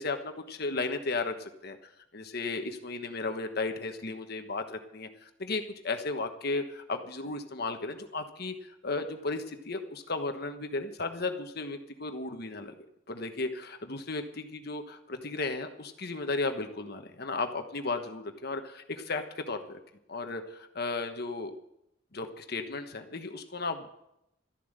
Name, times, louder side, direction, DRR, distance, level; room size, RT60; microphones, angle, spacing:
voice 1, 0.0-1.8 2.1-8.5 8.8-12.7 13.1-19.8 20.1-21.5 22.1-23.9, left 3 dB, 55° left, 6 dB, 1.3 m, -35 dB
13.5 x 11.0 x 6.7 m, 0.81 s
head